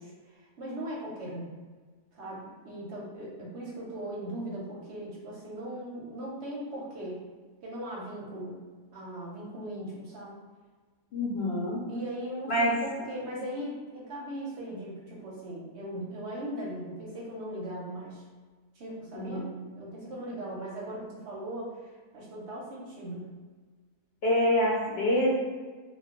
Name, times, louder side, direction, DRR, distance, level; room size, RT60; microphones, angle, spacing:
voice 1, 0.0-1.5 2.1-7.3 7.6-8.6 8.9-10.4 11.9-18.2 18.7-19.4 19.7-23.3, right 1 dB, 65° right, -4 dB, 0.8 m, -39 dB
voice 2, 11.1-11.8 12.5-12.7 19.1-19.4 24.2-25.3, equal, 60° left, -6 dB, 0.7 m, -26 dB
2.2 x 2.2 x 3.5 m, 1.4 s
omnidirectional pair, 1.5 m